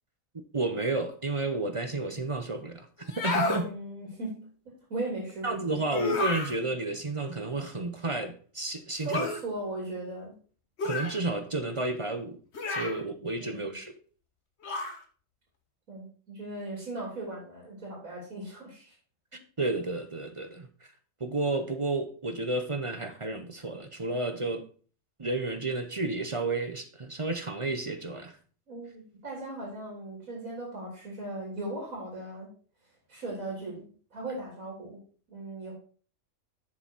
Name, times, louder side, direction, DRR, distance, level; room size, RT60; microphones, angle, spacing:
voice 1, 0.5-3.7 5.4-9.3 10.8-12.4 12.7-13.9 19.6-20.9 21.2-24.6 25.2-28.4, right 2 dB, 30° right, 0.7 m, -31 dB
sound 1, 3.0-3.6 5.9-6.5 9.1-9.4 10.8-11.2 12.5-13.0 14.6-15.0, left 3 dB, 55° left, 1.5 m, -31 dB
voice 2, 3.4-5.6 5.8-5.9 8.9-10.3 13.4-13.6 15.9-18.9 28.7-32.5 33.1-35.0 35.3-35.8, right 2 dB, 85° right, 3.5 m, -38 dB
7.3 x 6.9 x 4.5 m
omnidirectional pair, 1.4 m